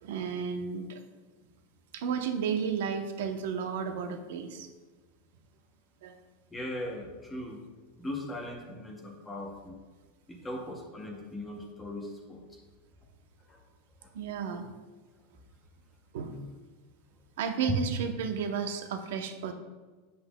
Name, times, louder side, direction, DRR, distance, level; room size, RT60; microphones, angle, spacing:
voice 1, 0.0-1.0 1.9-4.7 6.0-6.1 14.1-14.7 16.1-16.4 17.4-19.5, right 6 dB, 70° right, 7 dB, 0.7 m, -33 dB
voice 2, 6.5-7.6 8.0-9.8 10.3-12.6 13.5-13.6 14.0-14.1 17.7-17.8, left 1 dB, 10° left, 0 dB, 0.7 m, -38 dB
8.1 x 7.7 x 2.2 m, 1.3 s
supercardioid pair, 175°, 0 cm